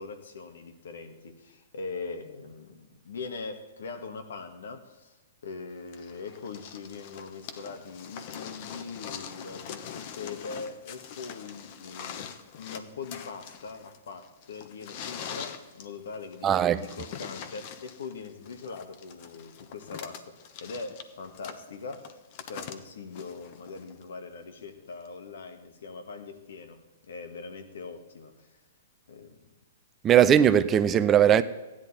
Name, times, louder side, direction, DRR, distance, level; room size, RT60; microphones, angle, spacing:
voice 1, 0.0-5.2 5.4-22.2 22.5-28.6 29.1-29.5, left 4 dB, 75° left, 1.5 m, -41 dB
sound 1, 5.9-24.0 25.1-25.2, left 8 dB, 45° left, 1.1 m, -43 dB
voice 2, 16.4-16.9 30.0-31.4, right 9 dB, 25° right, 0.5 m, -19 dB
14.5 x 10.5 x 4.2 m
hypercardioid pair, 125°, 0 cm